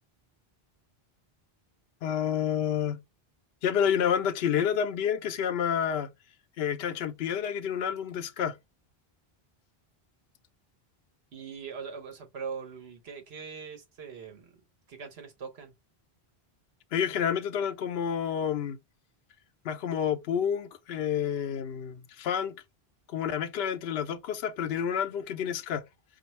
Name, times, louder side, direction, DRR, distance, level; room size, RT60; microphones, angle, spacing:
voice 1, 2.0-3.0 3.6-6.1 6.6-8.6 16.9-18.8 19.6-22.5 23.1-25.8, left 8 dB, 75° left, 0.8 m, -29 dB
voice 2, 11.3-14.5 14.9-15.7, right 6 dB, 80° right, 1.2 m, -41 dB
5.1 x 2.6 x 3.0 m
omnidirectional pair, 1.0 m